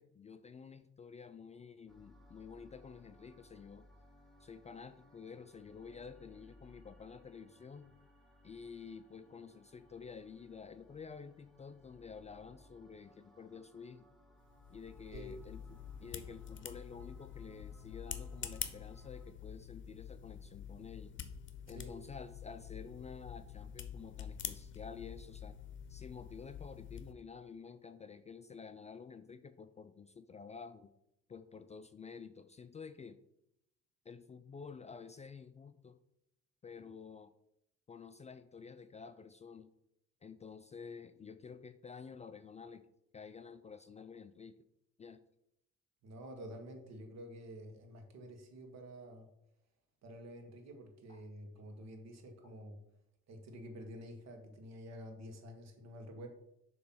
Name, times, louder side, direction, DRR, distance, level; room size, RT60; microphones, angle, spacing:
voice 1, 0.0-3.9 4.4-7.9 8.4-14.1 14.7-21.1 21.7-25.6 25.9-30.9 31.3-33.2 34.1-36.0 36.6-37.3 37.9-39.7 40.2-42.9 43.1-44.6 45.0-45.2 51.1-51.2 52.4-52.5, left 5 dB, 25° left, 10 dB, 0.4 m, -50 dB
sound 1, 1.9-19.3, left 1 dB, ahead, 1.6 m, -63 dB
sound 2, 14.4-27.1, left 8 dB, 40° left, 0.8 m, -47 dB
voice 2, 46.0-49.3 50.0-52.8 53.3-56.3, equal, 60° right, 4 dB, 1.6 m, -49 dB
6.7 x 3.2 x 5.8 m, 0.79 s
supercardioid pair, 70°, 31 cm